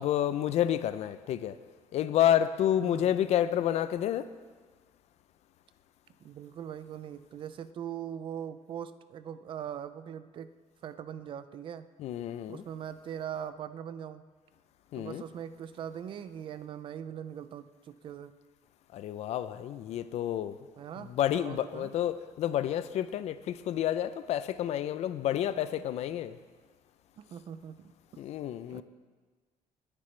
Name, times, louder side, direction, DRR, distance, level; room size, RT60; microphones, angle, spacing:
voice 1, 0.0-1.6 1.9-4.3 12.0-12.6 14.9-15.2 18.9-20.6 21.0-26.4 28.2-28.8, left 11 dB, 55° left, 0.5 m, -29 dB
voice 2, 2.8-3.1 6.2-10.5 10.8-11.9 12.5-14.2 14.9-18.3 20.8-21.9 27.2-28.2 28.7-28.8, right 9 dB, 40° right, 0.4 m, -41 dB
19.0 x 9.8 x 3.3 m
cardioid pair, 175°, 14 cm